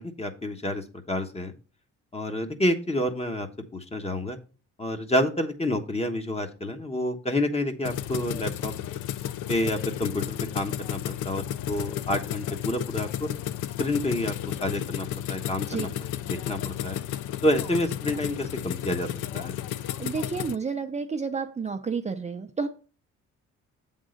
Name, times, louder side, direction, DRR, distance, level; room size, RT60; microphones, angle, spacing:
voice 1, 0.0-1.5 2.1-4.4 4.8-8.7 9.5-13.3 13.8-15.9 16.2-17.0 17.4-19.5, left 1 dB, 20° left, 6 dB, 1.2 m, -29 dB
sound 1, 7.8-20.5, left 11 dB, 85° left, 0.5 m, -33 dB
voice 2, 19.6-22.7, right 5 dB, 25° right, 5 dB, 0.6 m, -31 dB
7.9 x 3.7 x 6.4 m, 0.36 s
cardioid pair, 90°, 30 cm